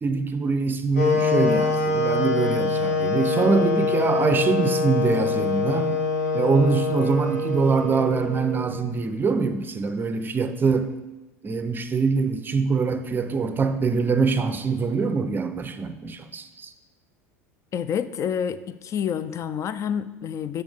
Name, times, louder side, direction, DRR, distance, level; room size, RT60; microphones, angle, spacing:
voice 1, 0.0-6.0 6.3-10.9 11.4-16.7, right 4 dB, 25° right, 9 dB, 0.5 m, -24 dB
Wind instrument woodwind instrument, 1.0-8.9, left 3 dB, 90° left, 0.9 m, -24 dB
voice 2, 17.7-20.6, left 8 dB, 35° left, 15 dB, 0.4 m, -28 dB
6.7 x 6.0 x 3.5 m, 1.1 s
hypercardioid pair, 80°, 8 cm